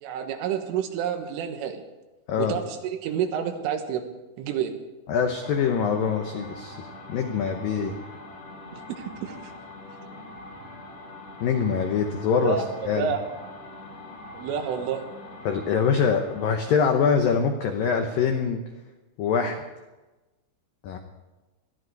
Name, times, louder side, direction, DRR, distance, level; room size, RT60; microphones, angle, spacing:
voice 1, 0.0-1.8 2.4-4.1 4.4-4.7 8.7-9.5 12.4-13.2 14.3-15.1, right 8 dB, 85° right, 6 dB, 4.0 m, -29 dB
voice 2, 5.1-8.0 11.4-13.1 15.5-18.6 19.2-19.6 20.8-21.0, left 6 dB, 85° left, 5 dB, 2.0 m, -24 dB
sound 1, 5.4-16.9, left 2 dB, 40° left, 2.7 m, -43 dB
21.0 x 14.5 x 4.7 m, 1.1 s
omnidirectional pair, 5.6 m